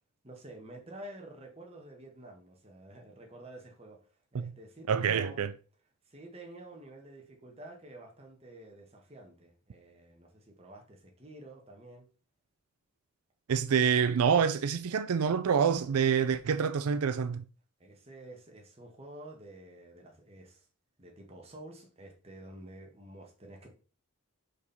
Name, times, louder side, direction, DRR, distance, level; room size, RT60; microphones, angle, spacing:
voice 1, 0.2-4.0 4.3-5.5 6.0-12.1 17.8-20.7 21.0-23.7, right 1 dB, 25° right, 1.5 m, -49 dB
voice 2, 4.9-5.5 13.5-17.4, right 7 dB, 90° right, 0.4 m, -27 dB
5.4 x 5.0 x 4.2 m
head